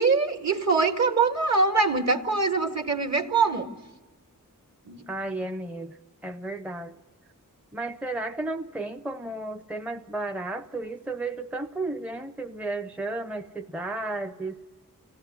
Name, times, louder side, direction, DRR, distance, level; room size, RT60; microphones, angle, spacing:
voice 1, 0.0-3.7 4.9-5.1, right 4 dB, 50° right, 4 dB, 1.9 m, -23 dB
voice 2, 5.1-7.0 7.7-14.6, right 2 dB, 5° right, 7 dB, 0.7 m, -33 dB
25.0 x 17.0 x 9.7 m, 1.5 s
wide cardioid pair, 65°, 34 cm